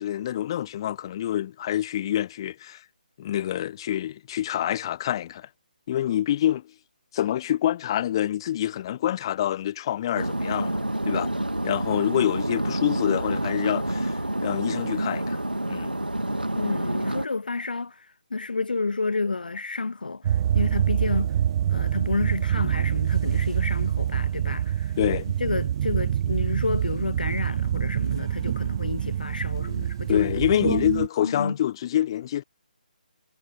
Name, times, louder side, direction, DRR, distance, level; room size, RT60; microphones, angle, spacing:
voice 1, 0.0-2.8 3.2-5.5 5.9-6.6 7.1-11.3 11.6-15.4 15.7-15.9 25.0-25.3 30.1-32.4, left 12 dB, 30° left, 0.9 m, -26 dB
sound 1, 10.1-17.3, right 1 dB, 85° right, 2.4 m, -28 dB
voice 2, 16.5-21.3 21.7-24.9 25.4-30.8 31.2-31.6, left 3 dB, 70° left, 0.6 m, -30 dB
sound 2, 20.2-31.1, right 10 dB, 30° right, 0.6 m, -26 dB
figure-of-eight pair, 145°, 5 cm